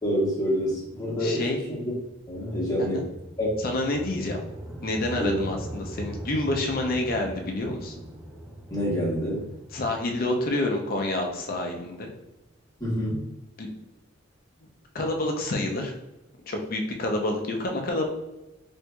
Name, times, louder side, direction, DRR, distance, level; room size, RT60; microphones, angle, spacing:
voice 1, 0.0-1.9 2.3-3.1 3.4-3.5 5.2-5.4 8.7-9.5 12.8-13.2, equal, 20° left, -6 dB, 1.2 m, -27 dB
voice 2, 1.2-1.6 3.6-4.4 4.8-7.9 9.7-12.1 13.6-13.7 14.9-15.9 16.5-18.1, left 2 dB, 45° left, 2 dB, 0.5 m, -28 dB
sound 1, 2.1-12.2, right 1 dB, 5° right, 0.5 m, -41 dB
4.4 x 2.6 x 2.2 m, 0.95 s
head